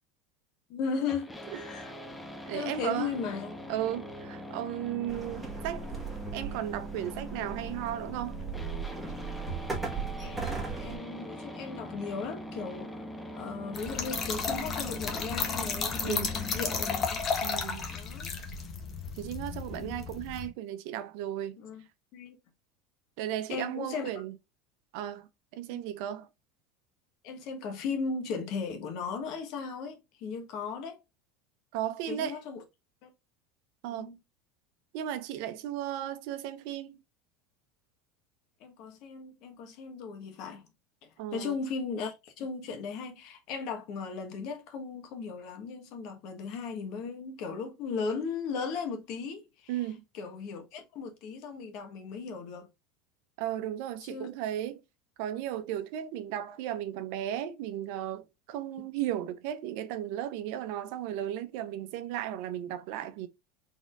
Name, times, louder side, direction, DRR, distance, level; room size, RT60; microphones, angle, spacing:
voice 1, 0.7-1.9 2.5-3.6 10.2-13.0 13.3-17.3 17.9-18.3 19.7-20.1 21.6-21.8 22.1-22.4 23.5-24.1 25.7-25.8 27.2-31.0 32.1-32.6 33.0-33.1 33.9-34.2 38.6-40.7 41.3-49.8 50.1-52.7 54.1-54.3 58.8-58.9, left 5 dB, 55° left, 1.3 m, -37 dB
sound 1, 1.1-17.1, equal, 10° left, 0.6 m, -42 dB
voice 2, 2.5-3.1 3.7-5.9 6.3-8.4 16.0-16.3 17.4-17.9 19.2-21.6 23.2-24.3 24.9-25.3 25.5-26.3 31.7-32.4 33.8-34.1 34.9-37.0 41.2-41.5 49.7-50.0 53.4-54.8 55.2-63.3, right 11 dB, 70° right, 0.7 m, -35 dB
sound 2, 5.1-11.0, right 5 dB, 10° right, 1.6 m, -38 dB
Trickle dribble / Fill (with liquid), 13.7-20.5, left 5 dB, 35° left, 1.1 m, -33 dB
4.1 x 3.6 x 2.4 m
supercardioid pair, 125°, 0 cm